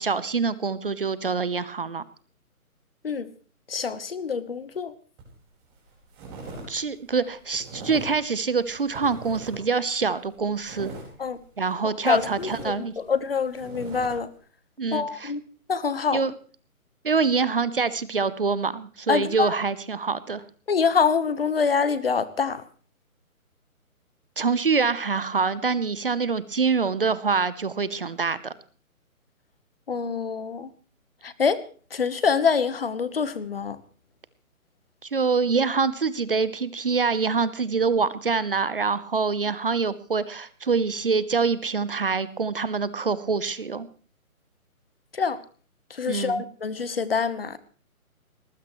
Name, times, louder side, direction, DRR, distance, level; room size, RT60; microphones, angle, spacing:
voice 1, 0.0-2.0 6.7-10.9 11.6-12.9 14.8-15.3 16.1-16.3 17.0-20.4 24.4-28.5 35.0-43.9 46.1-46.4, right 5 dB, 40° right, 0.9 m, -25 dB
voice 2, 3.7-4.9 11.2-11.4 12.1-14.3 14.9-15.4 15.7-16.2 19.1-19.5 20.7-22.6 29.9-30.7 31.2-31.6 31.9-33.8 45.1-45.4 46.0-47.6, left 5 dB, 40° left, 1.2 m, -25 dB
sound 1, 5.2-5.4 5.8-6.7 6.9-8.2 8.6-9.8 10.1-11.8 12.1-14.1, right 2 dB, 15° right, 5.1 m, -40 dB
20.5 x 19.0 x 3.1 m
hypercardioid pair, 170°, 43 cm